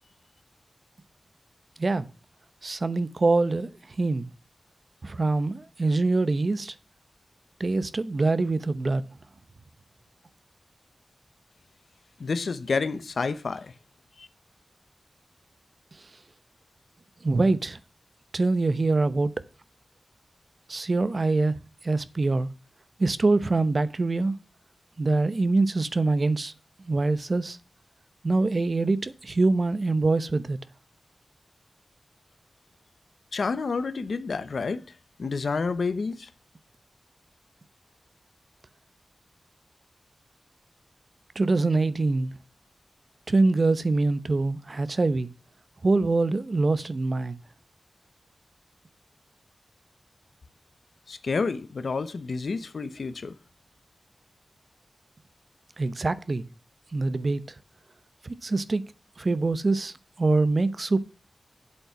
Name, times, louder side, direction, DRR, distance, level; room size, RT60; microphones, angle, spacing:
voice 1, 2.6-3.7 4.0-4.3 5.0-6.7 7.6-9.0 17.2-17.8 18.3-19.3 20.7-21.5 21.8-22.5 23.0-24.4 25.0-26.5 26.9-27.6 28.2-30.6 41.3-42.3 43.3-45.3 45.8-47.4 55.8-56.5 56.9-57.4 58.2-58.8 59.2-61.0, right 3 dB, 45° right, 0.8 m, -24 dB
voice 2, 12.2-13.7 14.2-14.3 33.3-34.8 35.2-36.3 51.1-53.3, left 4 dB, 80° left, 1.0 m, -29 dB
8.3 x 7.9 x 5.8 m
wide cardioid pair, 100°, 0 cm